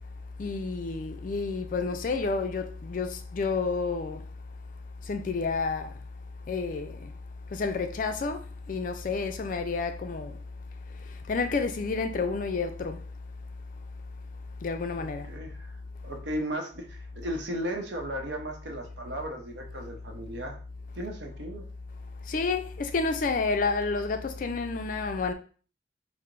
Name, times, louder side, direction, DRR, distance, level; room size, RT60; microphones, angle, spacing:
voice 1, 0.4-4.3 5.0-6.0 6.5-7.1 7.5-10.4 10.9-13.1 14.6-15.3 22.2-25.3, left 4 dB, 45° left, 0.4 m, -30 dB
voice 2, 15.0-15.7 16.0-20.6 21.0-21.7, equal, 75° right, 0.7 m, -35 dB
4.6 x 2.0 x 2.5 m
head